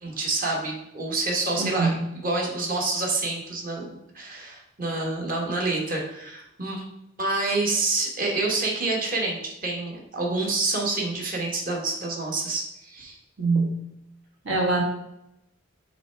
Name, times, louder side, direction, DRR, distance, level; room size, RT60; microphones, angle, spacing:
voice 1, 0.0-6.8 7.2-13.2, right 3 dB, 45° right, -1 dB, 1.4 m, -28 dB
voice 2, 1.6-1.9 13.4-13.7 14.4-14.8, right 3 dB, 75° right, -1 dB, 1.6 m, -23 dB
6.7 x 3.2 x 4.5 m, 0.82 s
head